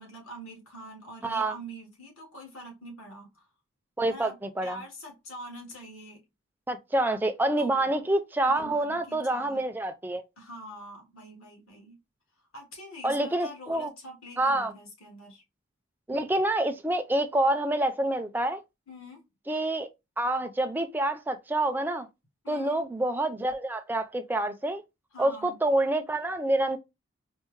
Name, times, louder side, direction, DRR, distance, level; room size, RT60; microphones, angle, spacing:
voice 1, 0.0-3.5 4.1-4.3 4.6-6.2 7.6-8.1 8.4-9.7 10.4-11.9 12.5-15.4 18.9-19.2 22.4-22.8 25.1-25.6, equal, 80° left, 1.4 m, -45 dB
voice 2, 1.2-1.5 4.0-4.8 6.7-10.2 13.0-13.9 14.4-14.7 16.1-18.6 19.5-19.9 20.2-22.1 22.5-24.8 25.2-26.8, right 1 dB, 10° right, 0.3 m, -27 dB
4.3 x 2.0 x 3.0 m
head